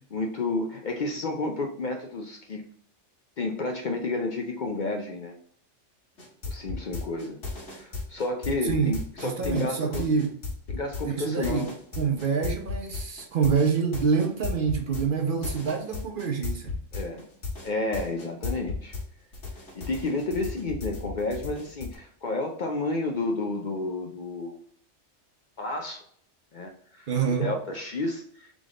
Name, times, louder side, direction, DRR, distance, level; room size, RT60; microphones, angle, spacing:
voice 1, 0.1-2.6 3.4-5.4 6.5-7.4 7.7-10.1 10.7-11.7 16.9-17.3 17.6-18.9 19.8-24.6 25.6-26.0 26.5-28.5, left 2 dB, 55° left, 0.6 m, -31 dB
sound 1, 6.2-19.0 19.3-22.0, left 3 dB, 70° left, 1.7 m, -35 dB
voice 2, 8.6-8.9 9.2-10.4 11.1-16.8 27.1-27.5, right 6 dB, 55° right, 0.7 m, -26 dB
3.7 x 3.4 x 3.6 m
omnidirectional pair, 1.2 m